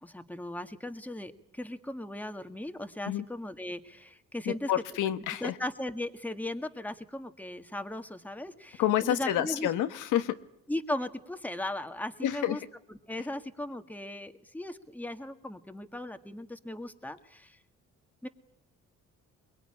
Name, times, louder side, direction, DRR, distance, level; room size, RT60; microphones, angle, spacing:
voice 1, 0.0-4.7 5.4-9.7 10.7-12.6 12.9-17.6 18.2-18.3, left 1 dB, 5° left, 7 dB, 1.8 m, -37 dB
voice 2, 4.7-5.5 8.8-10.4 12.2-12.6, left 12 dB, 85° left, 9 dB, 1.3 m, -28 dB
23.0 x 21.5 x 9.9 m, 0.76 s
cardioid pair, 90°, 30 cm